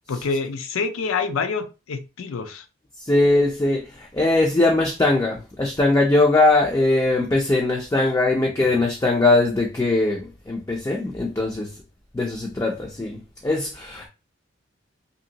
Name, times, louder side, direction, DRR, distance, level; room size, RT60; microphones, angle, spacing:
voice 1, 0.1-2.6, left 4 dB, 90° left, 0.5 m, -27 dB
voice 2, 3.0-11.7 12.1-14.1, left 2 dB, 15° left, 0.3 m, -21 dB
2.9 x 2.7 x 2.7 m
head